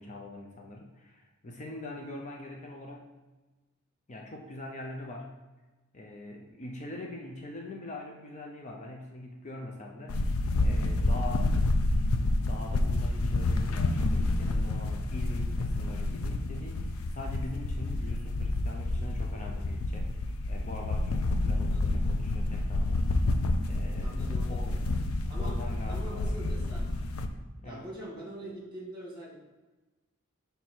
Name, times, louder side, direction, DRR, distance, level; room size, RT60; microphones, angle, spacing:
voice 1, 0.0-3.1 4.1-5.3 5.9-10.2 10.6-11.5 12.5-23.1 23.6-24.2 24.5-24.8 25.4-26.4 27.6-27.8, left 1 dB, 35° left, 0 dB, 0.6 m, -42 dB
sound 1, 10.1-27.3, left 2 dB, 85° left, 0.5 m, -29 dB
voice 2, 24.0-24.8 25.2-25.5 25.9-26.9 27.6-29.5, right 1 dB, 20° right, -4 dB, 1.9 m, -43 dB
6.2 x 3.5 x 4.3 m, 1.2 s
head